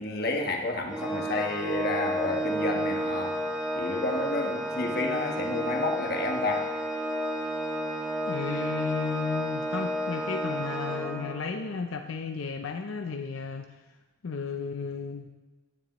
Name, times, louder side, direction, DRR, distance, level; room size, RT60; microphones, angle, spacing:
voice 1, 0.0-3.4 3.7-6.7, left 2 dB, 50° left, 2 dB, 1.3 m, -30 dB
Organ, 0.9-11.6, equal, 5° right, 1.9 m, -31 dB
voice 2, 8.3-13.8 14.2-15.3, left 5 dB, 80° left, 5 dB, 0.5 m, -34 dB
16.5 x 9.7 x 3.0 m, 1.2 s
head